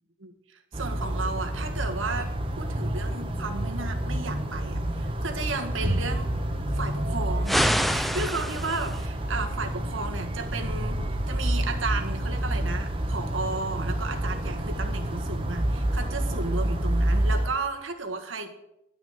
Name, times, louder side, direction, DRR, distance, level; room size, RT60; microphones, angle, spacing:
voice 1, 0.2-6.3 6.7-18.6, right 3 dB, 80° right, 4 dB, 1.7 m, -34 dB
sound 1, 0.7-17.5, right 1 dB, 25° right, 1.2 m, -28 dB
sound 2, 7.5-9.1, equal, ahead, 0.4 m, -26 dB
11.5 x 6.2 x 9.2 m, 0.83 s
head